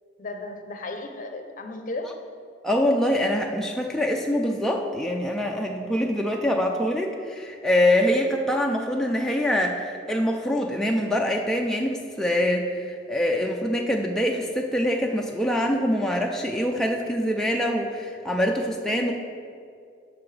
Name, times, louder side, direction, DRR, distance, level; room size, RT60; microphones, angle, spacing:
voice 1, 0.2-2.1 19.0-19.1, left 2 dB, 45° left, 6 dB, 0.6 m, -35 dB
voice 2, 2.6-19.1, equal, 5° left, 0 dB, 0.4 m, -24 dB
9.4 x 6.0 x 3.3 m, 2.3 s
head